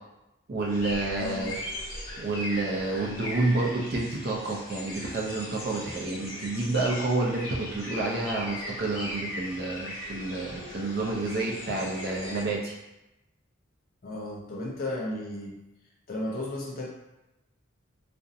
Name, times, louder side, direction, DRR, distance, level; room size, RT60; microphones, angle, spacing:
voice 1, 0.5-1.6 2.2-12.7, right 2 dB, 50° right, -1 dB, 0.4 m, -29 dB
sound 1, 0.7-12.4, left 1 dB, 70° left, 0.9 m, -39 dB
voice 2, 1.1-1.6 14.0-15.6 16.1-16.9, left 1 dB, 45° left, -3 dB, 0.5 m, -34 dB
2.5 x 2.0 x 2.6 m, 0.95 s
head